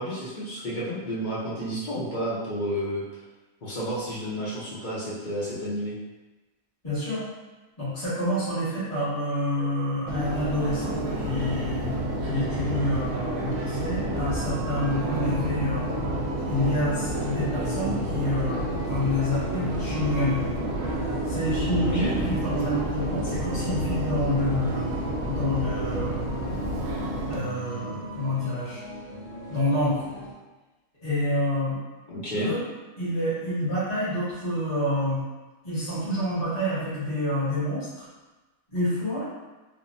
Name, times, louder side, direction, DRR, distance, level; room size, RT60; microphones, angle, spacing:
voice 1, 0.0-3.0 3.6-5.9 21.8-22.1 32.1-32.5, equal, 45° left, -8 dB, 0.7 m, -31 dB
voice 2, 6.8-7.2 7.8-15.9 16.4-20.4 21.2-24.9 25.3-26.4 27.3-28.8 29.5-30.0 31.0-31.8 32.4-32.6 33.0-35.2 35.6-38.1 38.7-39.3, left 1 dB, 30° left, -14 dB, 1.4 m, -28 dB
Subway metro underground, 10.1-27.4, right 1 dB, 85° right, 1.0 m, -30 dB
sound 1, 10.5-30.3, equal, 50° right, 0.8 m, -38 dB
3.3 x 2.0 x 2.6 m, 1.2 s
omnidirectional pair, 1.5 m